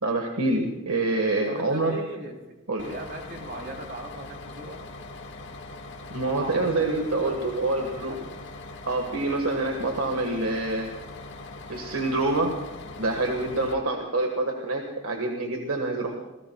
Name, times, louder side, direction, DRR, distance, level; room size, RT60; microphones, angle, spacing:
voice 1, 0.0-2.0 2.7-2.9 6.1-8.2 8.9-11.0 11.7-12.6 12.9-16.2, right 2 dB, 85° right, 3 dB, 1.6 m, -26 dB
voice 2, 1.5-2.5 2.9-4.8 6.2-6.9 7.2-8.3, right 1 dB, 55° right, 0 dB, 3.4 m, -39 dB
Bus, 2.8-13.7, left 2 dB, 55° left, 1.9 m, -41 dB
27.5 x 19.0 x 2.3 m, 1.1 s
head